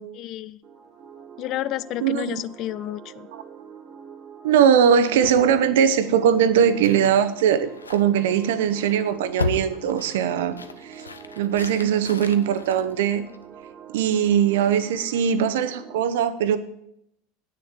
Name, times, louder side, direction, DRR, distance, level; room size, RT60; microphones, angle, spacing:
voice 1, 0.2-0.6 1.4-3.3, left 14 dB, 45° left, 17 dB, 0.4 m, -31 dB
sound 1, 0.6-16.0, right 7 dB, 35° right, 1.5 m, -44 dB
voice 2, 2.0-2.4 4.4-10.6 10.8-11.0 11.4-13.2 13.9-16.6, right 8 dB, 60° right, 13 dB, 0.8 m, -20 dB
sound 2, 5.2-13.7, left 4 dB, 80° left, 0.7 m, -36 dB
9.3 x 6.7 x 7.2 m, 0.76 s
figure-of-eight pair, 80°, 0 cm